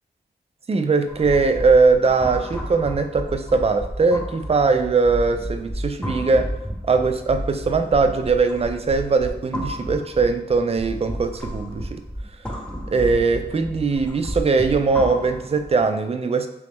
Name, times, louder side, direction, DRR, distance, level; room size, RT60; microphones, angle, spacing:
voice 1, 0.7-6.6 6.9-12.0 12.9-16.5, right 4 dB, 35° right, 7 dB, 0.4 m, -20 dB
sound 1, 1.1-15.8, equal, 5° left, 0.6 m, -32 dB
3.1 x 3.0 x 3.5 m, 0.82 s
wide cardioid pair, 65°, 18 cm